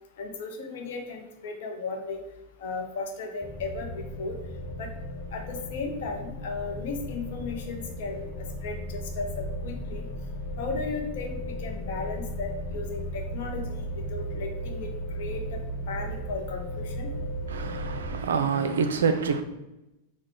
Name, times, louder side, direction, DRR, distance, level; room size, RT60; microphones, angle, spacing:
voice 1, 0.2-2.2 2.6-4.3 4.8-4.9 5.3-10.0 10.6-14.9 15.1-15.6 15.9-17.1, left 3 dB, 55° left, 3 dB, 0.7 m, -35 dB
sound 1, 3.4-18.2, equal, 15° left, 0.8 m, -35 dB
voice 2, 17.5-19.4, right 5 dB, 65° right, 8 dB, 0.4 m, -26 dB
3.9 x 2.2 x 4.4 m, 0.95 s
figure-of-eight pair, 90°, 0 cm